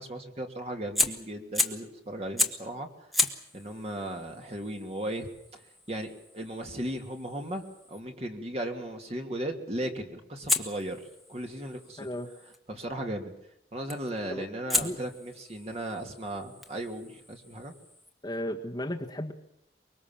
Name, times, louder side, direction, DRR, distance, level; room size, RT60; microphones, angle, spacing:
voice 1, 0.0-2.9 3.5-5.6 5.9-11.0 11.3-12.1 12.7-13.3 13.7-17.7, right 1 dB, 35° right, 3 dB, 2.8 m, -36 dB
Fire, 0.9-1.9 2.4-2.7 3.1-8.0 10.5-12.6 13.9-14.2 14.7-18.1, left 2 dB, ahead, 1.6 m, -34 dB
voice 2, 12.0-12.3 14.3-14.5 14.8-15.0 18.2-19.3, left 1 dB, 25° left, 2 dB, 1.7 m, -34 dB
24.5 x 22.5 x 7.4 m, 0.75 s
head